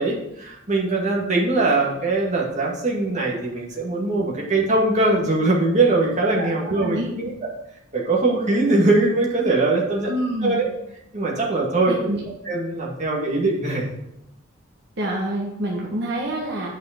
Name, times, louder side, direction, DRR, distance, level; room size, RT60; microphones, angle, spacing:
voice 1, 0.0-7.3 7.9-10.1 10.4-10.7 11.1-12.1 12.5-13.9, right 2 dB, 35° right, -3 dB, 2.1 m, -21 dB
voice 2, 6.3-7.1 10.0-10.6 11.9-12.2 15.0-16.7, right 1 dB, 55° right, -3 dB, 1.4 m, -27 dB
9.1 x 5.5 x 5.1 m, 0.84 s
head